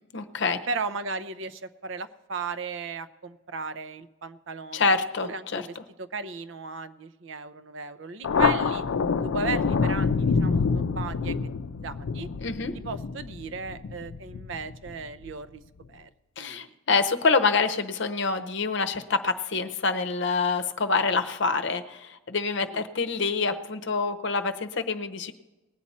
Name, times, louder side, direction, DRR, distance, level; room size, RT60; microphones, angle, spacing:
voice 1, 0.1-0.6 4.7-5.6 12.4-12.7 16.4-25.3, left 4 dB, 60° left, 8 dB, 0.8 m, -26 dB
voice 2, 0.7-5.0 5.2-8.8 9.2-11.5 11.8-12.3 12.8-15.6 15.9-16.1 16.4-16.7 22.7-22.8, right 4 dB, 65° right, 12 dB, 0.6 m, -36 dB
Thunder, 8.2-15.3, left 5 dB, 85° left, 0.4 m, -27 dB
19.5 x 8.4 x 4.2 m, 1.1 s
head